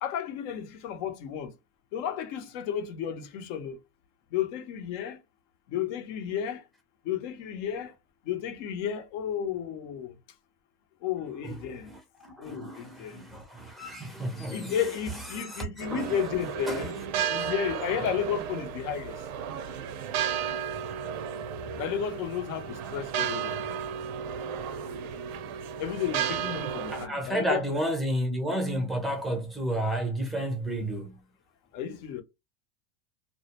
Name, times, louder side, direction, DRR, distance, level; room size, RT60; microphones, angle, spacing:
voice 1, 0.0-1.5 1.9-3.8 4.3-5.2 5.7-6.6 7.0-7.9 8.3-10.1 11.0-11.9 12.4-13.2 14.5-16.9 17.2-19.2 21.8-23.6 25.8-27.6 31.7-32.2, left 9 dB, 55° left, 0.7 m, -33 dB
voice 2, 11.4-14.9 15.3-16.2 16.7-16.9 17.4-17.5 26.9-31.2, right 1 dB, ahead, 0.5 m, -32 dB
sound 1, 15.8-27.1, right 8 dB, 70° right, 0.6 m, -33 dB
2.3 x 2.1 x 2.8 m
supercardioid pair, 120°, 44 cm